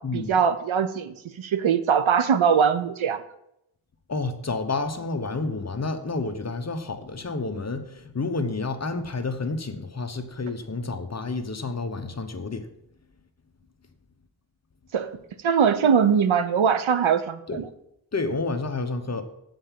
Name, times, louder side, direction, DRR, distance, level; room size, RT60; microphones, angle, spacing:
voice 1, 0.1-3.2 14.9-15.2 15.4-17.7, right 7 dB, 80° right, 12 dB, 0.8 m, -22 dB
voice 2, 4.1-12.7 17.5-17.6 18.1-19.2, left 3 dB, 35° left, 7 dB, 0.9 m, -30 dB
8.1 x 5.3 x 7.4 m, 0.81 s
wide cardioid pair, 115°, 47 cm